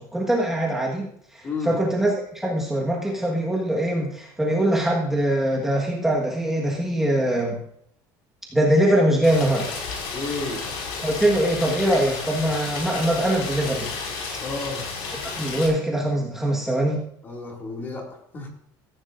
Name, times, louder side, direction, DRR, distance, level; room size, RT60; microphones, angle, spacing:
voice 1, 0.0-7.6 8.5-9.7 11.0-13.9 15.3-17.0, right 1 dB, 5° right, -3 dB, 1.5 m, -22 dB
voice 2, 1.4-1.8 10.1-10.7 14.4-15.0 17.2-18.5, left 3 dB, 25° left, 1 dB, 2.3 m, -32 dB
Rain, 9.2-15.7, left 4 dB, 80° left, 5.3 m, -32 dB
17.0 x 14.5 x 2.6 m, 0.70 s
cardioid pair, 170°, 9 cm